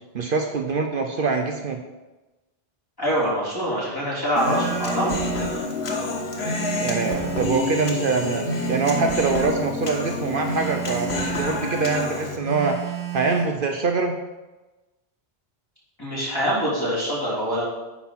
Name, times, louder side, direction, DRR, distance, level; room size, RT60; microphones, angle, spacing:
voice 1, 0.1-1.8 6.8-12.8 13.1-14.1, right 4 dB, 60° right, 4 dB, 0.8 m, -24 dB
voice 2, 3.0-5.2 16.0-17.6, equal, 20° left, -8 dB, 3.4 m, -24 dB
Human voice, 4.4-12.4, left 3 dB, 85° left, 1.4 m, -29 dB
Telephone, 4.4-5.6 6.4-7.6 8.4-9.6 10.4-11.6 12.4-13.6, right 8 dB, 90° right, 2.2 m, -31 dB
9.9 x 4.1 x 5.8 m, 1.1 s
omnidirectional pair, 1.0 m